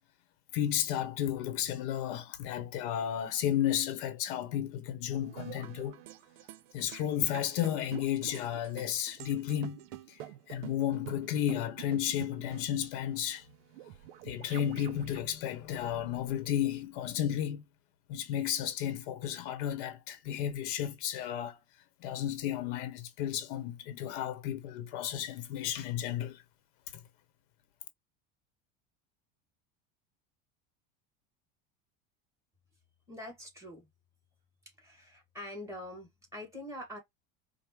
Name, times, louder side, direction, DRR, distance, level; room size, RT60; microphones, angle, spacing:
voice 1, 0.5-6.0 6.7-9.8 10.1-10.2 10.5-13.4 14.2-17.6 18.1-21.6 22.0-26.4, left 10 dB, 65° left, 0.9 m, -33 dB
sound 1, 5.1-15.2, right 13 dB, 80° right, 0.6 m, -47 dB
voice 2, 33.1-33.9 34.8-37.0, left 1 dB, 10° right, 1.9 m, -44 dB
5.1 x 2.1 x 3.0 m
cardioid pair, 160°, 30 cm